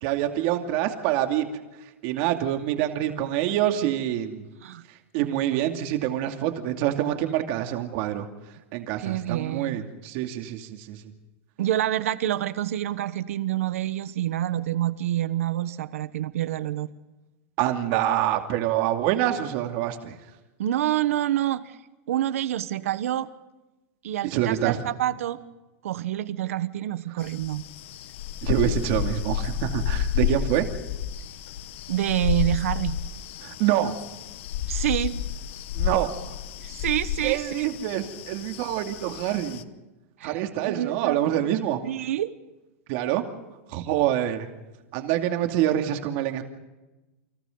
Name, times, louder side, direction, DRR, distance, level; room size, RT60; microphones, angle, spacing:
voice 1, 0.0-1.5 2.0-4.4 5.1-8.3 8.7-11.0 17.6-20.2 24.3-24.8 28.4-30.7 33.4-33.9 35.7-36.1 37.2-39.6 40.2-41.8 42.9-43.2 43.7-44.5 44.9-46.4, right 12 dB, 45° right, 5 dB, 2.6 m, -26 dB
voice 2, 9.0-9.8 11.6-16.9 20.6-21.8 22.1-23.3 24.0-25.4 25.8-27.6 31.9-33.0 34.7-35.2 36.6-37.7 40.2-41.5 41.8-42.3, right 12 dB, 80° right, 14 dB, 1.2 m, -27 dB
sound 1, 27.2-39.6, left 9 dB, 60° left, 1.2 m, -31 dB
29.5 x 25.5 x 4.0 m, 1.1 s
supercardioid pair, 155°, 7 cm